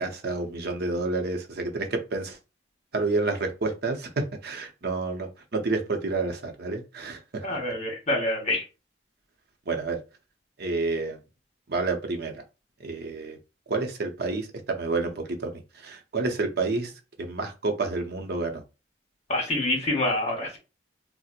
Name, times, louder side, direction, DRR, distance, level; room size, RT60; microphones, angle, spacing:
voice 1, 0.0-2.4 2.9-7.6 9.7-10.0 10.6-11.2 11.7-12.4 12.8-13.4 13.7-16.9 17.2-18.6, right 3 dB, 60° right, 0.7 m, -29 dB
voice 2, 7.4-8.6 19.3-20.6, left 1 dB, 35° left, 1.1 m, -26 dB
4.3 x 2.0 x 2.4 m
head